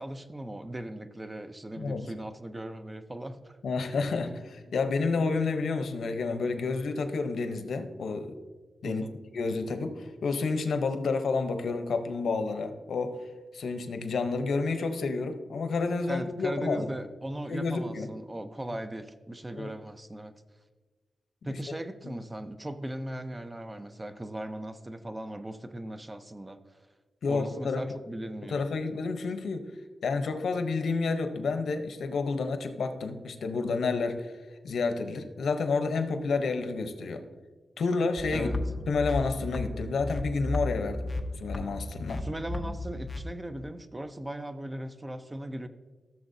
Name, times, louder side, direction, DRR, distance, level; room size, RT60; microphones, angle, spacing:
voice 1, 0.0-3.6 8.8-9.1 16.1-20.3 21.4-26.8 27.3-28.7 38.3-38.6 42.2-45.7, right 1 dB, 15° right, 10 dB, 0.5 m, -38 dB
voice 2, 1.8-2.1 3.6-8.3 8.8-9.0 9.3-13.2 13.5-16.9 17.5-18.1 19.5-19.7 21.4-21.8 22.0-22.1 27.2-27.8 28.5-29.7 30.0-34.3 34.6-37.2 37.8-38.5 38.9-41.1 41.4-42.2, left 4 dB, 85° left, 8 dB, 0.7 m, -30 dB
sound 1, 38.2-43.2, left 2 dB, 20° left, 0.7 m, -34 dB
15.0 x 6.9 x 2.7 m, 1.3 s
wide cardioid pair, 135°, 0 cm